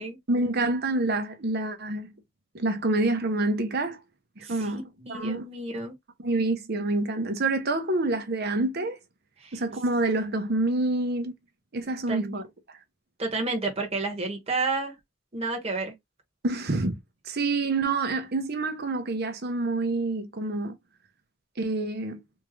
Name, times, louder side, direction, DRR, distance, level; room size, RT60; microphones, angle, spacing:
voice 1, 0.3-2.1 2.5-4.0 4.4-4.8 5.1-5.4 6.2-9.0 9.5-11.3 11.7-12.4 16.4-17.0 17.3-20.7 21.6-22.2, right 2 dB, 55° right, 0.9 m, -27 dB
voice 2, 4.4-5.9 9.4-9.6 12.1-12.4 13.2-15.0 15.3-15.9, right 3 dB, 35° right, 1.2 m, -31 dB
3.6 x 2.7 x 3.1 m
head